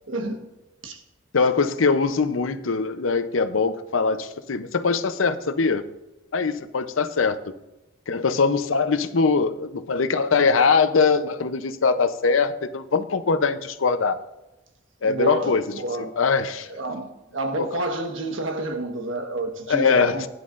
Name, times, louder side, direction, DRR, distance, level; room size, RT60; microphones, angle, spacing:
voice 1, 0.1-0.4 0.8-1.0 15.0-16.2 16.6-20.3, right 1 dB, 80° right, 1.3 m, -29 dB
voice 2, 1.3-5.9 6.3-7.5 8.1-14.2 15.0-15.6 16.2-16.7 17.6-17.7 19.7-20.3, left 4 dB, 90° left, 0.7 m, -22 dB
15.0 x 10.5 x 2.5 m
head